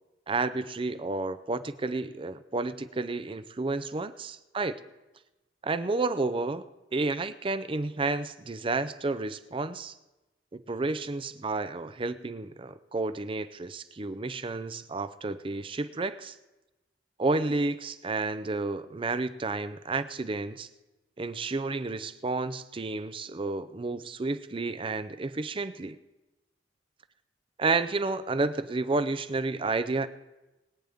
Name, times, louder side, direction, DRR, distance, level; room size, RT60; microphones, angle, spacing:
voice 1, 0.3-4.8 5.6-6.6 6.9-9.9 10.5-16.4 17.2-20.7 21.2-26.0 27.6-30.1, right 3 dB, 30° right, 12 dB, 0.5 m, -31 dB
22.0 x 9.0 x 3.6 m, 1.0 s
head